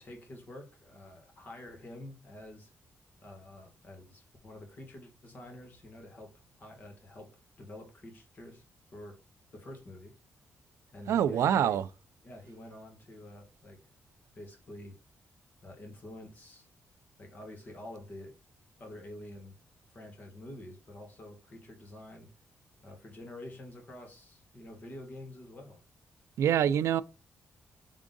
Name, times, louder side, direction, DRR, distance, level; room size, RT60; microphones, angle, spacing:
voice 1, 0.0-2.7 3.2-7.3 7.6-8.6 8.9-9.2 9.5-10.1 10.9-11.8 12.2-13.8 14.3-15.0 15.6-16.7 17.2-18.4 18.8-19.6 19.9-22.3 22.8-25.8, left 1 dB, 35° left, 1.5 m, -48 dB
voice 2, 11.1-11.9 26.4-27.0, right 9 dB, 80° right, 0.3 m, -25 dB
3.7 x 3.6 x 3.8 m
wide cardioid pair, 170°, 5 cm